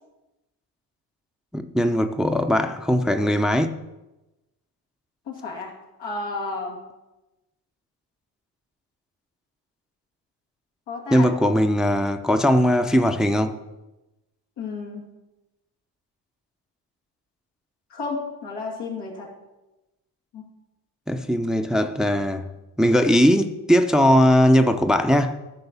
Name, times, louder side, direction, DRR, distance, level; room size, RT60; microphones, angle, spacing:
voice 1, 1.5-3.8 11.1-13.6 21.1-22.5 22.8-25.4, equal, ahead, 0.5 m, -19 dB
voice 2, 5.3-5.7 6.0-6.8 10.9-11.3 14.6-15.0 17.9-19.3 20.3-20.5, left 3 dB, 85° left, 2.7 m, -32 dB
12.0 x 4.5 x 7.0 m
cardioid pair, 85°, 42 cm